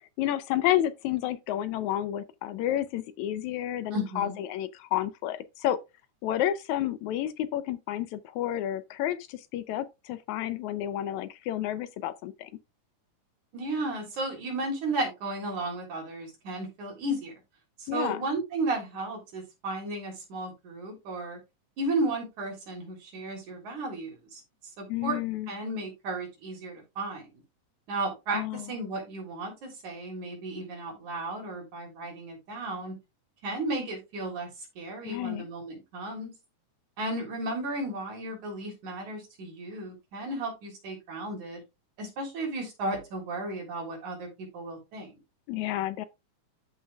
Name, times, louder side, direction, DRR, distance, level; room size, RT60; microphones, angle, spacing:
voice 1, 0.2-5.8 6.2-12.5 17.9-18.2 24.9-25.5 28.3-28.7 35.0-35.5 45.5-46.1, left 12 dB, 75° left, 1.9 m, -30 dB
voice 2, 3.9-4.4 13.5-17.3 17.8-21.4 21.8-24.4 24.8-27.4 27.9-32.9 33.4-34.5 34.8-36.3 37.0-41.6 42.0-45.1, right 2 dB, 70° right, 4.8 m, -34 dB
13.0 x 5.9 x 2.4 m
omnidirectional pair, 3.5 m